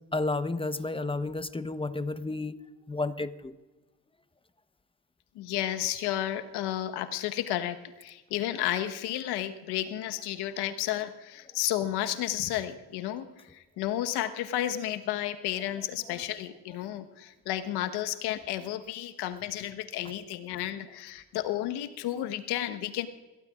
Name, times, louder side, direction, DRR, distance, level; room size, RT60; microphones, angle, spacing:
voice 1, 0.1-2.6 2.9-3.5, left 2 dB, 15° left, 11 dB, 1.0 m, -31 dB
voice 2, 5.3-23.1, left 12 dB, 75° left, 8 dB, 1.3 m, -32 dB
27.0 x 16.0 x 2.5 m, 1.1 s
hypercardioid pair, 55°, 40 cm